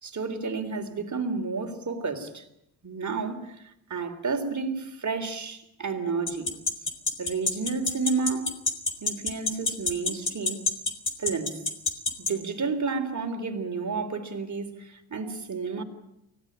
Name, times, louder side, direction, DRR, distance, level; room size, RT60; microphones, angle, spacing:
voice 1, 0.0-2.5 2.8-6.5 7.2-8.6 9.0-10.7 11.2-11.7 12.2-15.8, right 4 dB, 35° right, 3.5 m, -31 dB
sound 1, 6.3-12.3, left 3 dB, 25° left, 3.9 m, -25 dB
24.5 x 17.5 x 8.8 m
cardioid pair, 85°, 48 cm